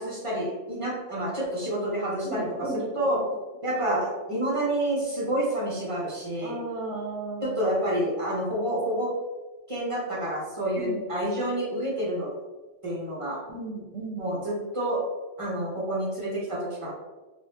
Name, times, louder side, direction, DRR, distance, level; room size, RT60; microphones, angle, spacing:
voice 1, 0.0-3.2 3.6-6.6 7.4-9.1 9.7-12.3 12.8-13.4 14.2-15.0 15.4-16.9, right 1 dB, 30° right, -5 dB, 0.8 m, -28 dB
voice 2, 2.2-2.9 3.1-3.2 6.4-7.6 10.8-11.2 13.5-14.4, right 2 dB, 80° right, 1 dB, 1.0 m, -35 dB
3.3 x 2.4 x 2.8 m, 1.2 s
omnidirectional pair, 1.2 m